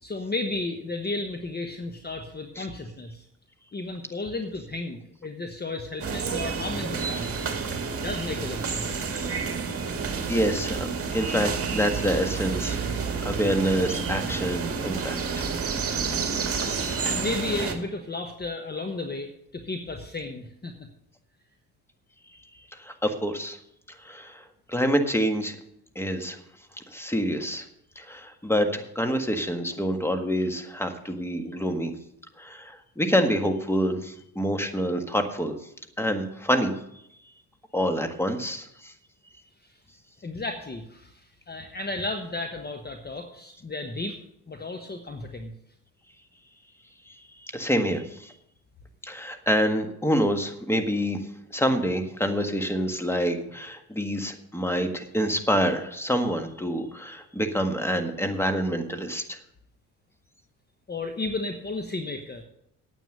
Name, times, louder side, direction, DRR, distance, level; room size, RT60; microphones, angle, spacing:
voice 1, 0.0-3.3 3.7-7.4 8.0-9.1 17.0-20.7 39.6-39.8 40.2-44.2 44.5-45.5 60.9-62.4, left 2 dB, 20° left, 5 dB, 1.2 m, -33 dB
sound 1, 6.0-17.7, right 5 dB, 30° right, 2.0 m, -29 dB
voice 2, 10.3-10.9 11.1-12.8 13.2-15.2 22.8-23.6 24.0-24.4 24.7-25.5 25.9-26.3 26.9-27.6 27.9-31.9 32.4-35.5 36.0-36.7 37.7-38.9 47.5-48.0 49.0-51.2 51.5-59.4, equal, 5° left, 7 dB, 1.6 m, -26 dB
9.2 x 9.1 x 6.6 m, 0.77 s
hypercardioid pair, 60°, 43 cm